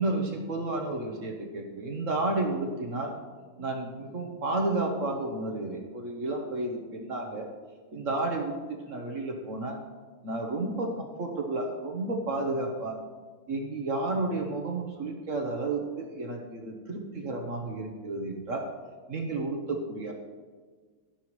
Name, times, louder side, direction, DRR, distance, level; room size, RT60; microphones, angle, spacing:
voice 1, 0.0-3.1 3.6-7.5 7.9-9.8 10.2-13.0 13.5-18.6 19.1-20.1, right 2 dB, 45° right, 2 dB, 1.2 m, -31 dB
11.5 x 11.0 x 3.1 m, 1.5 s
omnidirectional pair, 2.3 m